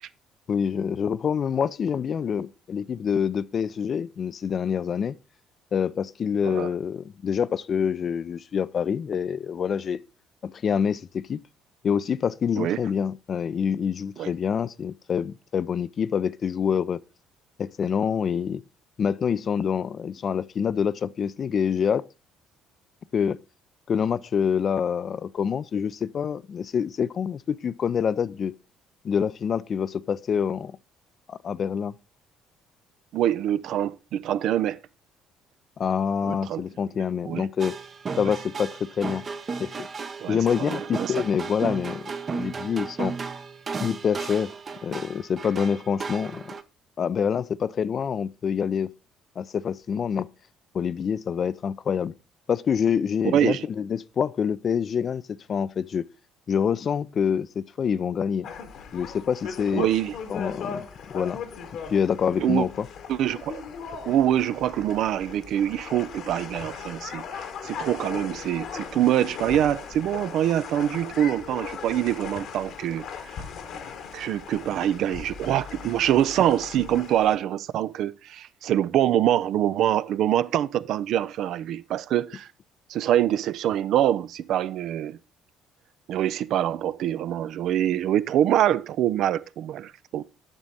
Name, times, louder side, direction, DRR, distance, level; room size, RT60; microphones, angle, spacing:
voice 1, 0.5-5.2 5.7-10.0 10.4-11.4 11.8-17.0 17.6-18.6 19.0-22.1 23.1-23.4 23.9-28.5 29.0-30.8 31.3-31.9 35.8-37.8 38.2-39.2 39.6-39.7 40.3-43.1 43.8-44.5 44.8-46.5 47.0-48.9 49.4-50.3 50.7-52.1 52.5-56.0 56.5-58.5 58.9-59.9 60.3-61.4 61.9-62.9, left 7 dB, 50° left, 0.4 m, -26 dB
voice 2, 33.1-34.8 36.2-36.6 37.2-37.5 38.2-38.3 40.2-41.2 53.3-53.6 59.7-60.1 62.4-62.7 63.1-63.6 64.1-73.1 74.1-82.5 82.9-85.2 86.1-90.2, right 11 dB, 65° right, 0.4 m, -25 dB
sound 1, 37.6-46.6, right 5 dB, 40° right, 0.7 m, -34 dB
sound 2, 58.4-77.4, left 6 dB, 65° left, 1.2 m, -38 dB
8.9 x 6.2 x 4.0 m
hypercardioid pair, 55°, 0 cm